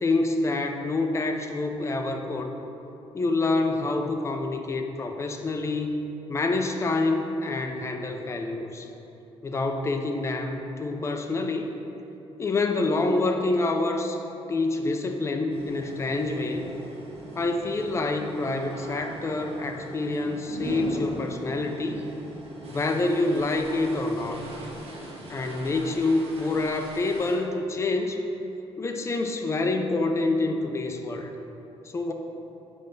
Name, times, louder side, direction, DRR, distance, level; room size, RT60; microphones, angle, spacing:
voice 1, 0.0-2.5 3.1-6.0 6.3-8.9 9.4-11.7 12.4-14.2 14.5-16.7 17.4-22.0 22.7-24.4 25.3-28.2 28.8-31.3 31.9-32.1, left 2 dB, 25° left, 4 dB, 0.5 m, -27 dB
sound 1, 15.5-27.4, right 2 dB, 75° right, 1.5 m, -40 dB
7.4 x 3.4 x 5.2 m, 3.0 s
cardioid pair, 120°, 11 cm